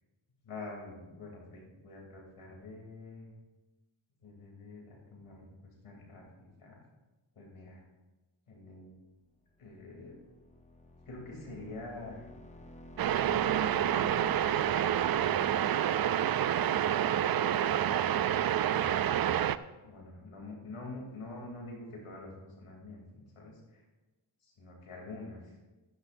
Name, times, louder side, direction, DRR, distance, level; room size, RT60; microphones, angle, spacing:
voice 1, 0.4-3.3 4.2-6.8 7.3-7.8 8.5-8.9 9.6-10.2 11.1-12.2 13.3-15.8 16.1-16.7 17.0-19.4 19.8-23.8 24.4-25.5, left 2 dB, 90° left, -1 dB, 3.1 m, -47 dB
sound 1, 9.5-17.3, left 1 dB, 15° left, 0.9 m, -53 dB
sound 2, 13.0-19.6, right 10 dB, 50° right, 0.4 m, -28 dB
12.5 x 12.5 x 2.6 m, 1.1 s
cardioid pair, 65°, 49 cm